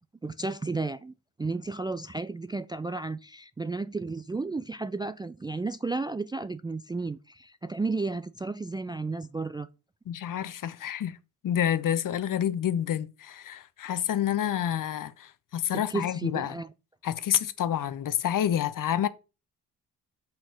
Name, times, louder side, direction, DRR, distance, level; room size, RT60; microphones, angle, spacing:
voice 1, 0.2-1.1 1.4-9.7 15.7-16.7, right 3 dB, 10° right, 0.3 m, -33 dB
voice 2, 10.1-11.2 11.4-16.6 17.0-19.1, left 10 dB, 55° left, 0.8 m, -28 dB
5.9 x 4.4 x 6.2 m
supercardioid pair, 65°, 40 cm